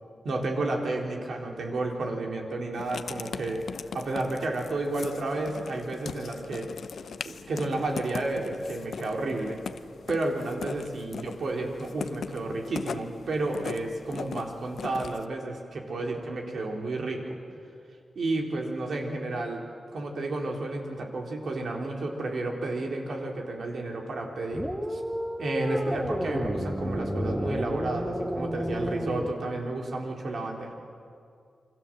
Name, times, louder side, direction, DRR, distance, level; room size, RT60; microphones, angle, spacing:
voice 1, 0.2-3.7 3.9-6.7 7.2-9.6 10.1-17.4 18.1-19.6 19.9-25.0 25.4-30.7, right 2 dB, 65° right, 1 dB, 4.0 m, -31 dB
Writing, 2.7-15.3, left 6 dB, 75° left, 0.8 m, -40 dB
sound 1, 24.5-29.3, equal, 10° right, 1.8 m, -31 dB
28.5 x 24.5 x 7.7 m, 2.3 s
wide cardioid pair, 140°, 0 cm